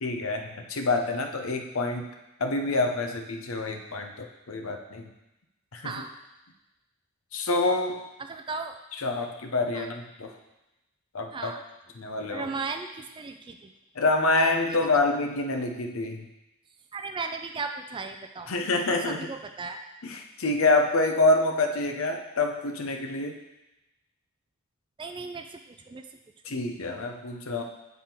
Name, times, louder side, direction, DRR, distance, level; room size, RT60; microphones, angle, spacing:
voice 1, 0.0-2.1 2.4-5.1 5.7-5.9 7.3-8.0 8.9-10.3 11.1-11.5 12.0-12.5 14.0-16.2 18.5-19.3 20.0-23.4 26.5-27.6, left 2 dB, 65° left, 4 dB, 0.7 m, -27 dB
voice 2, 8.2-8.8 9.7-9.9 11.3-11.6 12.3-13.7 14.7-15.0 16.9-18.5 18.9-19.8 25.0-26.0, right 4 dB, 20° right, 6 dB, 0.3 m, -36 dB
7.6 x 3.5 x 4.4 m, 0.97 s
head